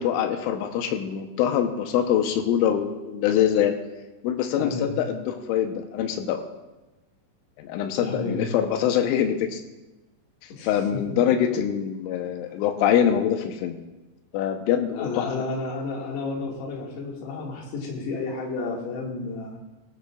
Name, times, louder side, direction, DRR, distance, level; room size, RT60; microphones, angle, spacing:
voice 1, 0.0-3.8 4.2-6.4 7.6-9.6 10.6-13.8 14.3-15.3, left 9 dB, 90° left, 5 dB, 3.4 m, -24 dB
voice 2, 4.5-4.9 8.0-8.5 10.5-10.7 11.1-11.2 12.5-12.6 14.9-19.6, left 3 dB, 65° left, -1 dB, 3.9 m, -31 dB
18.0 x 12.5 x 2.4 m, 1.1 s
omnidirectional pair, 5.5 m